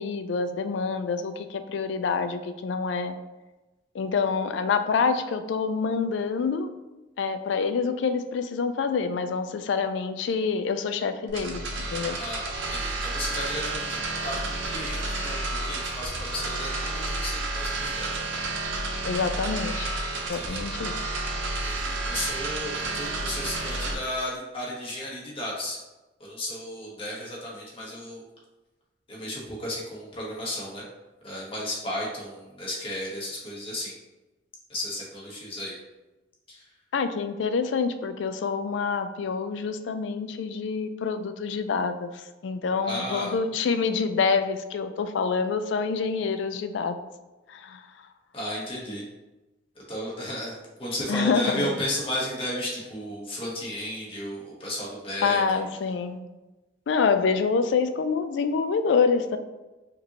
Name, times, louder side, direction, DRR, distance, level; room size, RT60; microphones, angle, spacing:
voice 1, 0.0-3.2 3.9-6.7 7.2-12.2 19.0-20.0 20.3-20.9 36.9-47.0 47.5-48.1 51.1-51.7 55.2-56.3 56.9-59.4, left 5 dB, 70° left, 9 dB, 0.3 m, -27 dB
sound 1, 11.3-23.9, right 2 dB, 85° right, 0.8 m, -31 dB
voice 2, 12.2-18.3 20.3-20.6 21.6-25.8 26.2-28.2 29.1-30.8 31.2-33.9 34.7-35.8 36.5-36.7 42.8-43.3 48.3-49.0 49.7-55.4, left 1 dB, 30° left, -4 dB, 1.1 m, -34 dB
5.1 x 2.9 x 2.8 m, 1.1 s
head